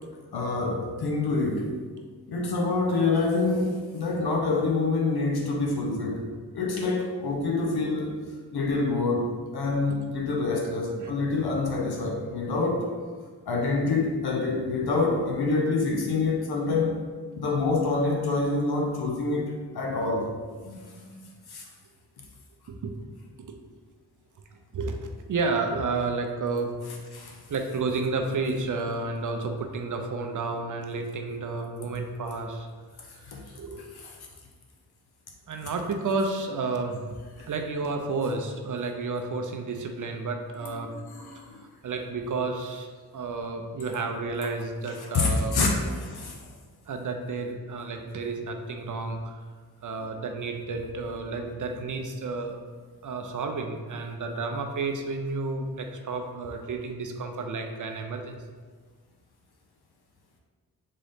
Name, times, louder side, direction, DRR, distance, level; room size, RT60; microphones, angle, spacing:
voice 1, 0.3-1.7 2.3-6.3 6.5-8.2 8.5-12.9 13.5-16.9 17.3-20.3 21.5-21.6 27.1-27.4 33.3-33.4 33.9-34.1 37.4-37.5 40.6-41.6 45.1-46.4, left 3 dB, 70° left, 0 dB, 0.7 m, -26 dB
voice 2, 20.6-21.2 22.7-22.9 24.7-25.0 25.3-26.7 27.5-32.7 33.2-33.8 35.5-37.0 37.5-40.9 41.4-42.9 43.1-45.6 46.9-49.3 49.8-52.6 53.0-58.4, right 3 dB, 50° right, 4 dB, 0.5 m, -31 dB
3.9 x 3.7 x 3.4 m, 1.5 s
wide cardioid pair, 130°, 39 cm